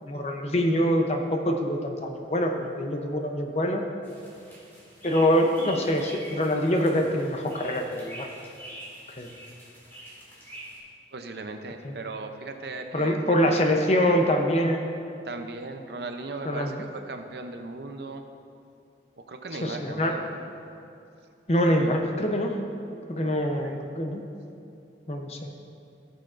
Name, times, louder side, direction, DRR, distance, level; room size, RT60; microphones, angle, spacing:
voice 1, 0.0-3.8 5.0-8.3 9.1-9.3 11.8-11.9 12.9-14.9 16.5-16.7 19.6-20.1 21.5-22.6 23.1-24.2 25.1-25.4, equal, 35° left, 3 dB, 0.7 m, -25 dB
sound 1, 4.0-10.8, right 1 dB, 15° left, 2.1 m, -45 dB
voice 2, 11.1-13.9 15.2-18.2 19.3-20.5 23.2-23.3 23.6-23.8, right 3 dB, 70° right, 6 dB, 0.6 m, -38 dB
15.5 x 6.7 x 2.5 m, 2.6 s
head